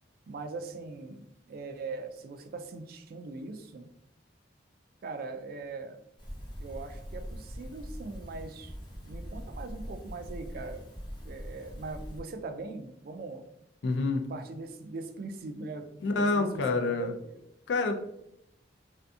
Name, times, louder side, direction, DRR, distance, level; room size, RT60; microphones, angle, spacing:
voice 1, 0.3-3.9 5.0-6.0 6.6-8.8 9.0-10.8 11.2-13.4 14.3-15.9 16.2-16.6 16.9-17.3, right 3 dB, 55° right, 7 dB, 0.3 m, -41 dB
sound 1, 6.2-12.2, equal, 25° left, 0.7 m, -42 dB
voice 2, 13.8-14.2 16.0-17.1 17.7-17.9, left 3 dB, 75° left, 4 dB, 0.4 m, -27 dB
2.6 x 2.5 x 2.3 m, 0.80 s
head